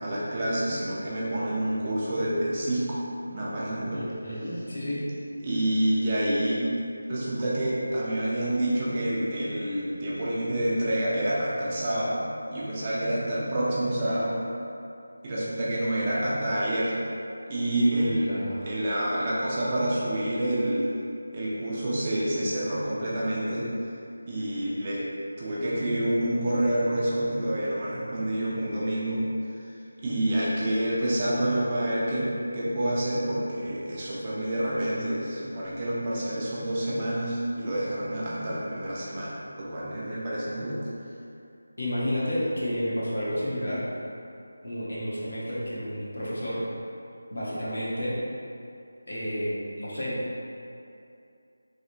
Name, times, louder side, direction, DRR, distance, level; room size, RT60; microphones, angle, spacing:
voice 1, 0.0-3.0 3.3-4.0 5.4-6.7 7.1-12.2 12.5-14.4 15.2-16.9 17.5-18.3 18.7-20.8 21.3-23.7 24.3-25.0 25.4-29.2 29.5-29.7 30.0-40.8, right 1 dB, 25° right, -7 dB, 0.5 m, -28 dB
voice 2, 3.9-5.0 17.9-18.6 41.8-43.8 44.6-46.6 47.3-48.2 49.1-50.2, equal, 75° left, -9 dB, 1.2 m, -31 dB
3.2 x 2.8 x 2.8 m, 2.6 s
figure-of-eight pair, 170°, 0 cm